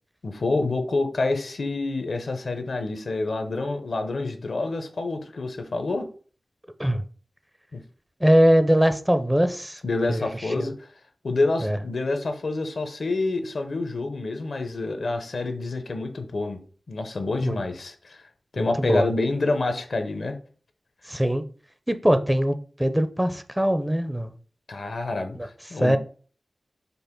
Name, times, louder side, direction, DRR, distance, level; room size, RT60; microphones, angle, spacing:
voice 1, 0.2-6.1 7.7-7.8 9.8-10.9 11.2-16.6 16.9-18.2 18.5-20.4 24.7-25.4 25.7-26.0, left 3 dB, 75° left, 0.7 m, -27 dB
voice 2, 8.2-9.8 10.1-10.7 11.6-11.8 17.4-17.6 18.6-19.1 21.1-21.4 21.9-24.3 25.3-25.5 25.8-26.0, equal, 10° right, 0.5 m, -22 dB
5.3 x 2.1 x 4.4 m
cardioid pair, 45°, 0 cm